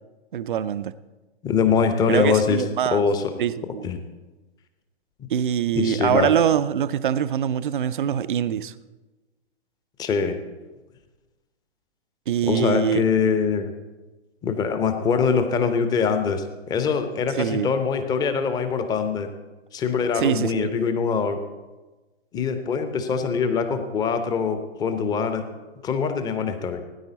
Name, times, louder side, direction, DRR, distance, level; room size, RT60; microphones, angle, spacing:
voice 1, 0.3-0.9 2.1-3.0 3.4-3.8 5.3-8.7 12.3-13.0 17.4-17.7 20.2-20.7, right 9 dB, 50° right, 0.6 m, -24 dB
voice 2, 1.4-2.6 2.9-3.3 3.8-4.0 5.2-5.3 5.7-6.3 10.0-10.4 12.4-13.7 14.4-19.3 19.7-21.4 22.3-25.4 25.8-26.8, left 6 dB, 10° left, 0.8 m, -23 dB
17.5 x 9.8 x 4.0 m
figure-of-eight pair, 120°, 32 cm